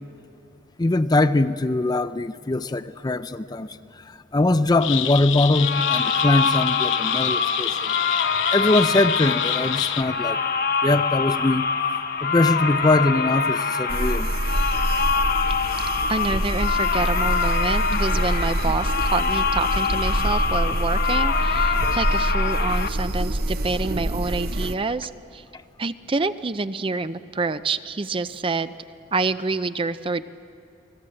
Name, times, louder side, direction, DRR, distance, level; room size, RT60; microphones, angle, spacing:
voice 1, 0.8-3.7 4.1-7.9 8.5-10.4 10.8-11.7 12.2-14.3, left 2 dB, 20° left, 0.5 m, -22 dB
sound 1, 4.8-10.0, left 10 dB, 85° left, 0.9 m, -27 dB
sound 2, 5.5-22.9, left 5 dB, 50° left, 1.0 m, -25 dB
sound 3, 13.9-24.7, right 1 dB, 50° right, 1.0 m, -25 dB
voice 2, 16.1-25.4 25.8-28.7 29.1-30.2, right 3 dB, 30° right, 0.5 m, -27 dB
29.0 x 20.5 x 7.7 m
head